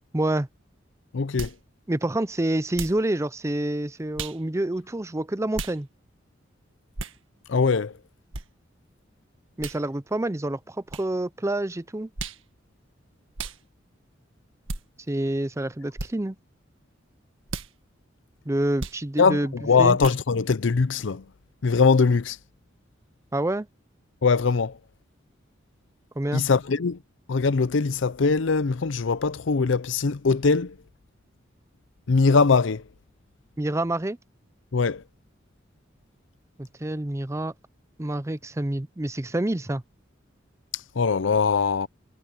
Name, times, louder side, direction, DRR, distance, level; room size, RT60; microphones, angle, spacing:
voice 1, 0.1-0.5 1.9-5.9 9.6-12.1 15.1-16.4 18.5-20.0 23.3-23.7 26.2-26.4 33.6-34.2 36.6-37.5 38.0-39.8, right 1 dB, 15° right, 0.6 m, -27 dB
voice 2, 1.1-1.5 7.5-7.9 19.2-21.2 21.6-22.4 24.2-24.8 26.3-27.0 27.3-30.8 32.1-32.8 34.7-35.0 41.0-41.9, left 4 dB, 70° left, 0.6 m, -21 dB
sound 1, 1.4-1.6 2.7-3.0 4.2-4.4 5.5-5.8 7.0-7.2 8.3-8.5 9.6-9.8 10.9-11.1 12.2-12.4 13.4-13.6 14.7-14.8 16.0-16.1 17.5-17.7 18.8-19.0 20.0-20.2, right 3 dB, 85° right, 1.8 m, -34 dB
head